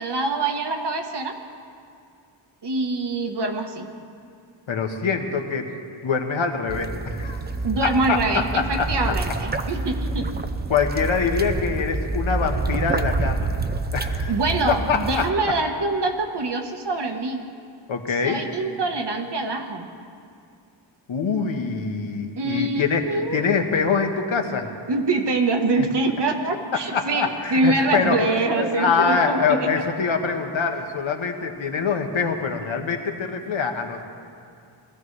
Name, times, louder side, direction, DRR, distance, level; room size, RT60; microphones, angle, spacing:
voice 1, 0.0-1.3 2.6-3.9 7.6-10.2 14.3-17.4 18.1-19.9 22.4-23.4 24.9-29.7, right 2 dB, 55° right, 4 dB, 1.3 m, -24 dB
voice 2, 4.7-5.7 6.0-7.4 7.8-8.2 8.5-8.9 10.7-13.5 13.9-14.3 14.7-15.3 17.9-18.4 21.1-24.7 25.8-25.9 26.9-28.2 28.5-34.0, left 5 dB, 70° left, 4 dB, 1.3 m, -24 dB
sound 1, 6.7-15.3, right 3 dB, 20° right, 0.5 m, -27 dB
20.5 x 14.0 x 3.3 m, 2.3 s
wide cardioid pair, 115°, 49 cm